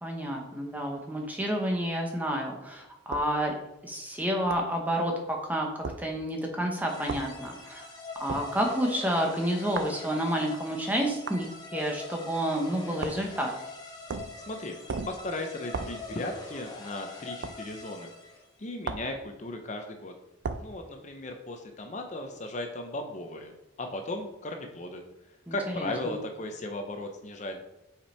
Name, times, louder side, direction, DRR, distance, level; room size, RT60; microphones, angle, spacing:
voice 1, 0.0-3.5 3.8-5.7 6.0-7.9 8.2-11.5 11.7-13.5 25.5-26.2, equal, 10° right, 1 dB, 0.8 m, -30 dB
sound 1, 3.1-3.3 4.5-4.7 5.8-6.0 7.1-7.3 8.3-8.5 9.8-10.0 11.3-11.5 13.0-13.3 14.1-14.4 14.9-15.2 15.7-16.0 17.4-17.6 18.8-19.2 20.4-20.7, right 4 dB, 60° right, 0.4 m, -35 dB
sound 2, 6.9-18.5, left 3 dB, 20° left, 1.0 m, -43 dB
voice 2, 14.4-14.8 15.1-18.1 18.6-20.1 20.6-23.5 23.8-27.6, left 2 dB, 35° left, 4 dB, 0.6 m, -36 dB
5.4 x 5.1 x 4.3 m, 0.93 s
head